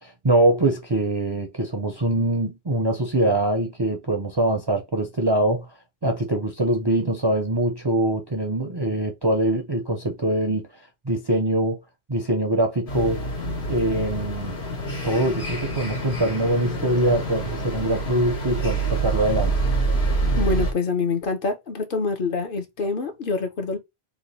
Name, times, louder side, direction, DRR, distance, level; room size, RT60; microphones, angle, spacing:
voice 1, 0.0-5.7 6.0-11.8 12.1-13.3 13.7-14.6 15.0-19.6, right 1 dB, 35° right, 0.4 m, -23 dB
sound 1, 12.9-20.7, right 2 dB, 80° left, 1.6 m, -26 dB
voice 2, 20.4-23.8, left 3 dB, 55° left, 0.9 m, -26 dB
3.1 x 2.2 x 3.9 m
omnidirectional pair, 1.1 m